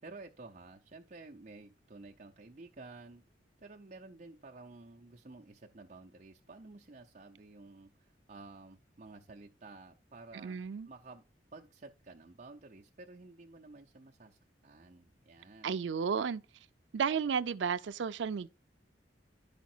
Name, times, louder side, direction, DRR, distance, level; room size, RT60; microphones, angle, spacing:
voice 1, 0.0-3.2 3.6-10.6 10.9-11.2 11.5-15.8, right 3 dB, 40° right, 0.6 m, -52 dB
voice 2, 10.3-10.9 15.6-16.4 16.9-18.5, right 6 dB, 80° right, 0.4 m, -33 dB
11.0 x 5.1 x 4.4 m
head